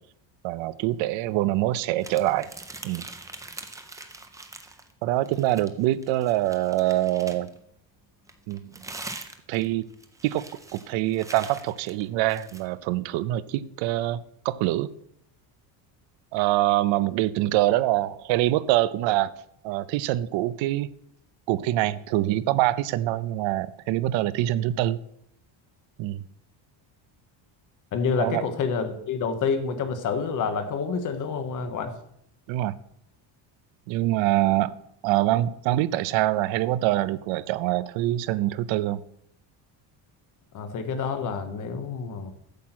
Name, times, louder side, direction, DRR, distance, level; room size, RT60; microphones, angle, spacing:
voice 1, 0.4-2.5 2.8-3.1 5.0-7.5 8.5-8.8 9.5-9.8 10.2-10.4 10.7-14.2 14.4-14.9 16.3-19.3 19.6-20.9 21.5-25.0 26.0-26.2 28.2-28.4 32.5-32.7 33.9-34.8 35.0-39.0, right 15 dB, 70° right, 0.6 m, -24 dB
sound 1, 2.0-4.9 5.2-7.6 8.3-12.7, right 3 dB, 10° right, 0.3 m, -43 dB
voice 2, 27.9-31.9 40.5-42.3, left 5 dB, 40° left, 1.2 m, -28 dB
8.5 x 7.4 x 6.0 m
cardioid pair, 175°, 47 cm